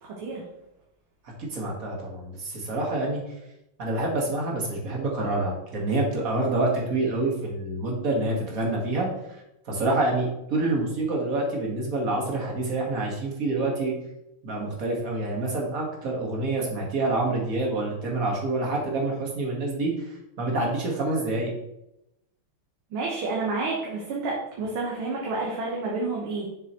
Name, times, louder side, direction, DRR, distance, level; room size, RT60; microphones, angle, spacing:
voice 1, 0.0-0.4 22.9-26.5, right 3 dB, 85° right, -3 dB, 2.1 m, -29 dB
voice 2, 1.4-3.2 3.8-9.1 9.7-13.9 14.4-19.9 20.4-21.5, right 2 dB, 45° right, -1 dB, 1.9 m, -27 dB
6.9 x 6.8 x 3.0 m, 0.86 s
omnidirectional pair, 2.2 m